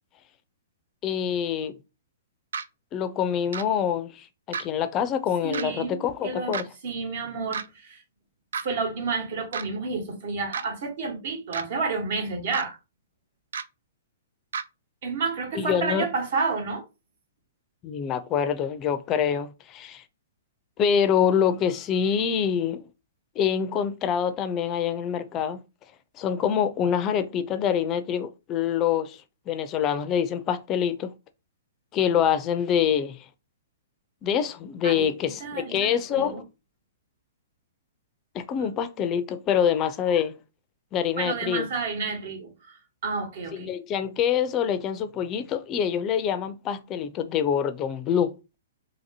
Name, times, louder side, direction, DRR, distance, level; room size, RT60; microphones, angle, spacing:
voice 1, 1.0-1.8 2.9-6.6 15.5-16.1 17.8-20.0 20.8-22.9 23.4-25.6 26.2-31.1 31.9-33.2 34.2-36.4 38.3-40.3 40.9-41.7 43.5-48.3, left 8 dB, 25° left, 0.4 m, -25 dB
sound 1, 2.5-2.6 3.5-3.6 4.5-4.7 5.5-5.7 6.5-6.6 7.5-7.7 8.5-8.7 9.5-9.6 10.5-10.6 11.5-11.7 12.5-12.6 13.5-13.6 14.5-14.6, right 6 dB, 80° right, 0.3 m, -31 dB
voice 2, 5.4-8.0 8.6-12.8 15.0-16.8 34.8-36.4 38.6-38.7 41.2-43.7, right 4 dB, 55° right, 1.2 m, -30 dB
2.8 x 2.7 x 2.7 m
hypercardioid pair, 145°, 0 cm